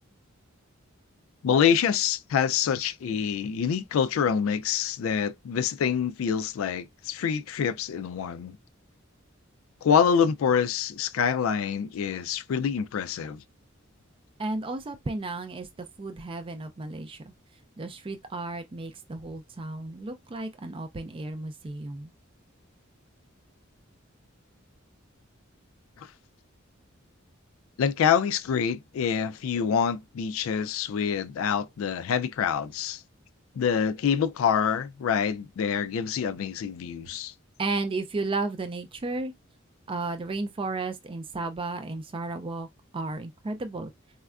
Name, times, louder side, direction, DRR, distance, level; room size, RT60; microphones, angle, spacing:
voice 1, 1.4-8.5 9.8-13.4 26.0-26.1 27.8-33.0 33.6-37.3, left 7 dB, 75° left, 0.3 m, -26 dB
voice 2, 14.4-17.3 17.8-22.1 37.0-37.2 37.6-39.3 39.9-42.7 42.9-43.9, right 3 dB, 25° right, 0.4 m, -33 dB
4.2 x 2.3 x 2.3 m
head